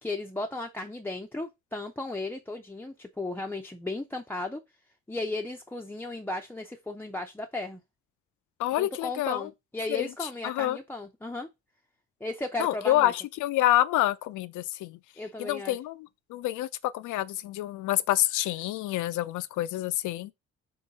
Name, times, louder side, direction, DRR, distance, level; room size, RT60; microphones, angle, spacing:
voice 1, 0.0-4.6 5.1-7.8 8.8-11.5 12.2-13.1 15.2-15.8, left 2 dB, 5° left, 0.5 m, -35 dB
voice 2, 8.6-9.5 9.9-10.1 10.4-10.8 12.6-15.0 15.4-16.7 16.9-20.3, left 14 dB, 80° left, 0.5 m, -27 dB
3.8 x 3.1 x 3.9 m
cardioid pair, 90°, 30 cm